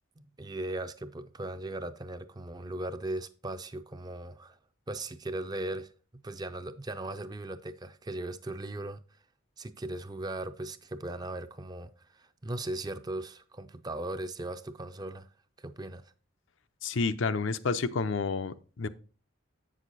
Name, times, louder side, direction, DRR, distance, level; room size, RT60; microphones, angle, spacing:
voice 1, 0.2-4.6 4.9-5.9 6.2-9.0 9.6-15.3 15.6-16.1, right 2 dB, 20° right, 0.4 m, -38 dB
voice 2, 16.8-18.9, left 4 dB, 70° left, 0.5 m, -30 dB
8.2 x 6.4 x 4.0 m
head